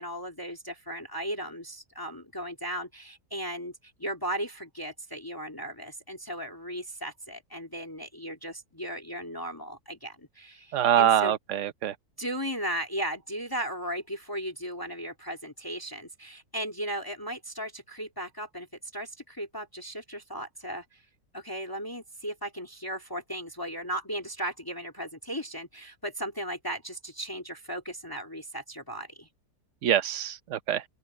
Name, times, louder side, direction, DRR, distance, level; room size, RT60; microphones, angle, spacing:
voice 1, 0.0-11.3 12.2-18.7 18.9-21.0 21.3-29.3, right 1 dB, 15° left, 2.1 m, -36 dB
voice 2, 10.7-11.9 29.8-30.8, right 10 dB, 55° right, 1.0 m, -24 dB
open air
omnidirectional pair, 1.7 m